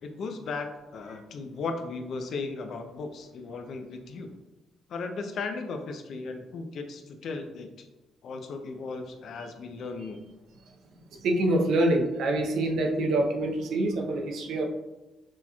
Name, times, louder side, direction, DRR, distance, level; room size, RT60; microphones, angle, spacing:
voice 1, 0.0-4.3 4.9-7.9 8.2-10.2, left 4 dB, 65° left, 6 dB, 0.5 m, -36 dB
voice 2, 11.2-14.6, right 1 dB, 75° right, 2 dB, 0.6 m, -25 dB
6.0 x 2.9 x 2.3 m, 1.0 s
cardioid pair, 90°, 0 cm